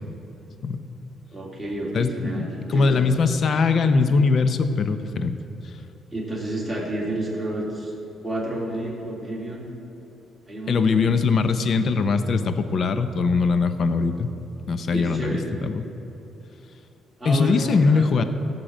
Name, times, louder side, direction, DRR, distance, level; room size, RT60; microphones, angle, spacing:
voice 1, 1.3-3.2 6.1-7.9 8.2-9.7 10.5-11.1 14.9-15.5 17.2-18.3, right 1 dB, ahead, -6 dB, 3.6 m, -30 dB
voice 2, 1.9-5.3 10.7-14.3 14.7-15.8 17.2-18.2, left 4 dB, 55° left, 10 dB, 0.8 m, -21 dB
15.0 x 5.9 x 8.9 m, 2.9 s
cardioid pair, 90°, 0 cm